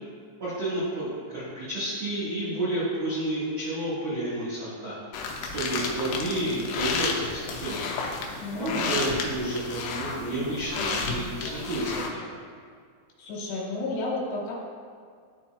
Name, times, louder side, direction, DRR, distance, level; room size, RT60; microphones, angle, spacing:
voice 1, 0.4-4.9 5.5-7.9 8.6-12.3, right 1 dB, 75° right, -12 dB, 1.5 m, -30 dB
Leather Boots, 5.1-12.1, left 4 dB, 90° left, 2.4 m, -32 dB
voice 2, 8.4-8.8 13.2-14.5, left 2 dB, 75° left, -4 dB, 3.3 m, -32 dB
12.5 x 4.2 x 2.3 m, 2.1 s
omnidirectional pair, 5.6 m